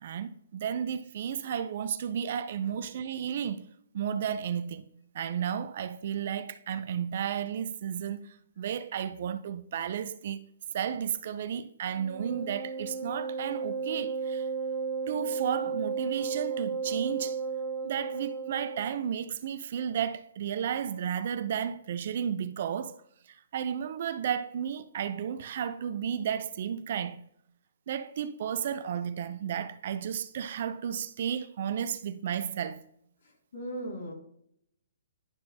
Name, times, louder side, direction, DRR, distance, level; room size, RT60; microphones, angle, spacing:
voice 1, 0.0-3.7 3.9-4.9 5.1-10.4 10.7-14.5 15.1-17.4 17.8-23.0 23.3-27.2 27.9-32.8, right 8 dB, 45° right, 0.4 m, -33 dB
Wind instrument woodwind instrument, 11.9-19.0, right 5 dB, 15° right, 1.6 m, -34 dB
voice 2, 33.5-34.1, right 1 dB, 65° left, 2.7 m, -37 dB
11.5 x 4.4 x 2.7 m
hypercardioid pair, 160°, 0 cm